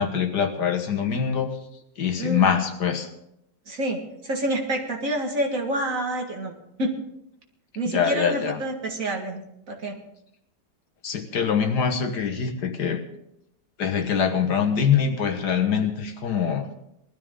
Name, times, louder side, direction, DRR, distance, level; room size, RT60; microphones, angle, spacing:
voice 1, 0.0-1.5 2.0-3.1 7.9-8.6 11.0-13.0 13.8-16.7, left 7 dB, 65° left, 6 dB, 1.9 m, -24 dB
voice 2, 2.2-2.5 3.7-6.5 6.8-7.0 7.8-10.0, right 1 dB, 50° right, 1 dB, 2.3 m, -28 dB
20.0 x 13.0 x 3.8 m, 0.78 s
omnidirectional pair, 1.9 m